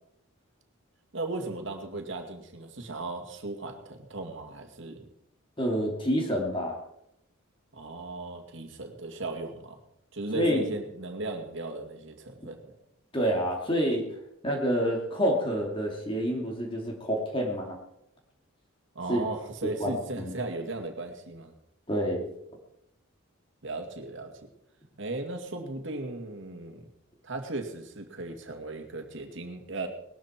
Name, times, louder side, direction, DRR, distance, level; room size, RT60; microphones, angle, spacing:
voice 1, 1.1-5.1 7.7-9.8 10.1-12.7 18.9-21.5 23.6-24.3 25.0-26.9 27.2-29.9, right 2 dB, 60° right, 4 dB, 2.4 m, -36 dB
voice 2, 5.6-6.8 10.3-10.6 13.1-14.1 14.4-17.8 19.1-19.2 19.8-20.3 21.9-22.3, equal, 25° left, 0 dB, 2.8 m, -28 dB
19.5 x 13.0 x 4.5 m, 0.79 s
head